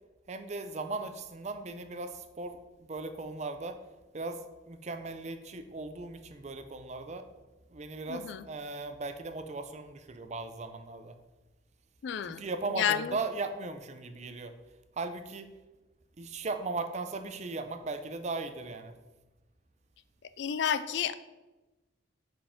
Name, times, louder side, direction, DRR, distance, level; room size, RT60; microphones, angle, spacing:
voice 1, 0.3-3.8 4.1-7.3 7.7-11.1 12.3-14.5 15.0-15.5 16.2-18.9, right 3 dB, 35° right, 8 dB, 0.5 m, -38 dB
voice 2, 8.1-8.4 12.0-12.4 12.7-13.2 20.4-21.1, left 8 dB, 65° left, 14 dB, 0.3 m, -30 dB
5.2 x 5.0 x 5.0 m, 1.1 s
head